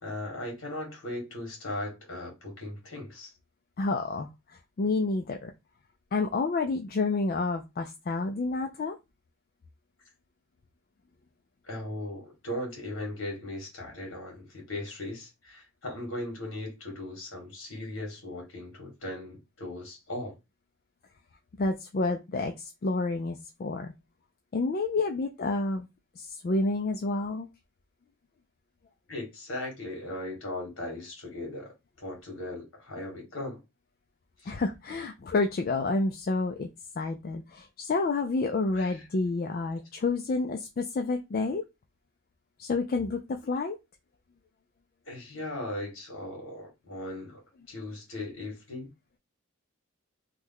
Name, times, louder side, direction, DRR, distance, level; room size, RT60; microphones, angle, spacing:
voice 1, 0.0-3.3 11.6-20.3 29.1-33.6 34.4-34.6 38.7-39.1 43.4-43.5 45.0-47.4 47.7-48.9, left 1 dB, 65° left, 1.6 m, -38 dB
voice 2, 3.8-5.5 6.1-9.0 21.6-23.9 24.5-25.9 26.2-27.5 34.5-36.7 37.0-41.6 42.6-43.8, left 3 dB, 40° left, 0.3 m, -29 dB
3.1 x 2.2 x 3.6 m
head